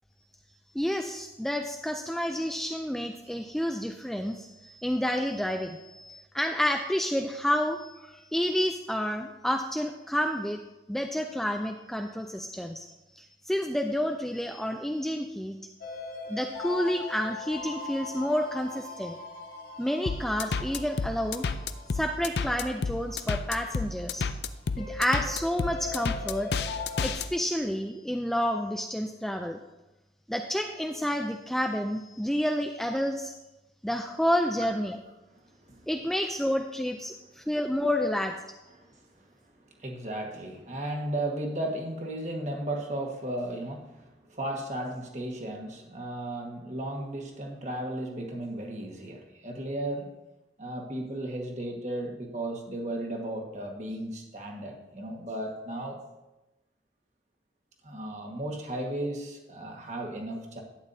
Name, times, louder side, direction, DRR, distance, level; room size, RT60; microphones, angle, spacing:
voice 1, 0.7-10.6 10.9-15.6 16.3-19.2 19.8-21.5 21.9-24.2 24.8-26.5 27.0-29.6 30.3-33.3 33.8-35.0 35.9-38.4, equal, ahead, 4 dB, 0.3 m, -29 dB
sound 1, 15.8-27.1, left 4 dB, 55° left, 1.7 m, -41 dB
sound 2, 20.1-27.3, left 4 dB, 75° left, 0.5 m, -30 dB
voice 2, 35.3-35.9 38.7-39.3 39.5-50.1 50.6-56.0 57.8-60.6, right 1 dB, 40° right, 1 dB, 1.5 m, -35 dB
11.5 x 9.2 x 2.7 m, 1.0 s
head